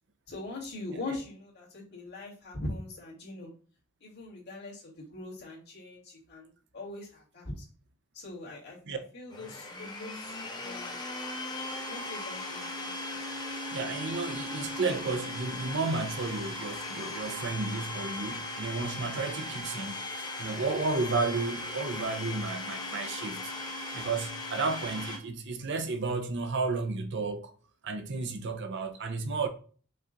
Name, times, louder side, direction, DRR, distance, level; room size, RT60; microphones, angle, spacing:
voice 1, 0.3-3.5 4.0-6.5 6.7-7.6 8.1-11.0 11.8-12.7, left 2 dB, 55° left, 2.2 m, -41 dB
Domestic sounds home sounds, 9.3-25.2, left 2 dB, 20° left, 0.9 m, -38 dB
voice 2, 13.7-23.5 23.9-27.5 27.8-29.5, right 3 dB, 60° right, 0.6 m, -32 dB
5.4 x 2.4 x 3.9 m
head